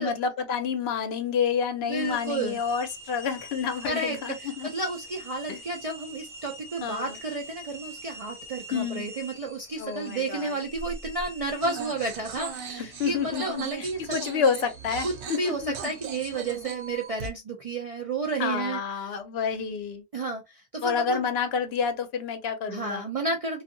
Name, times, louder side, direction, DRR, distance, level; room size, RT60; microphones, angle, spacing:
voice 1, 0.0-4.7 5.5-5.6 6.8-7.2 8.7-9.1 9.8-10.6 12.8-15.9 18.4-20.0 20.8-23.1, left 6 dB, 70° left, 0.8 m, -29 dB
voice 2, 1.8-2.6 3.9-14.0 15.0-19.1 20.1-21.2 22.7-23.6, right 3 dB, 50° right, 0.4 m, -32 dB
sound 1, 1.9-17.3, right 1 dB, 5° right, 0.7 m, -45 dB
sound 2, 11.6-17.3, right 6 dB, 80° right, 0.9 m, -39 dB
2.6 x 2.4 x 2.5 m
omnidirectional pair, 1.1 m